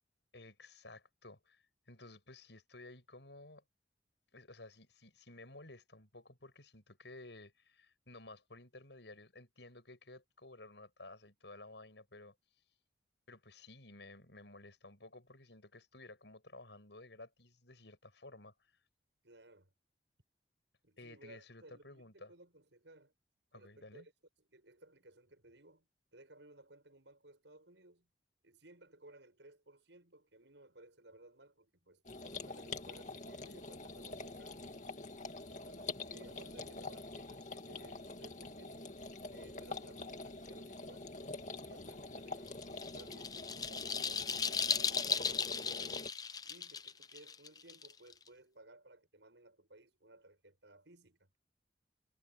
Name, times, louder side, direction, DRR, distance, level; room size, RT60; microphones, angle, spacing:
voice 1, 0.3-3.6 4.3-12.3 13.3-18.5 21.0-22.3 23.5-24.1, left 2 dB, 80° left, 6.4 m, -54 dB
voice 2, 19.2-19.7 20.8-23.1 23.5-24.1 24.4-28.1 28.4-34.8 35.5-39.0 39.3-41.1 41.5-46.0 46.4-51.4, right 2 dB, 85° right, 7.0 m, -60 dB
sound 1, 32.1-46.1, left 3 dB, 40° left, 2.2 m, -46 dB
sound 2, 42.5-48.3, left 6 dB, 20° left, 0.6 m, -36 dB
head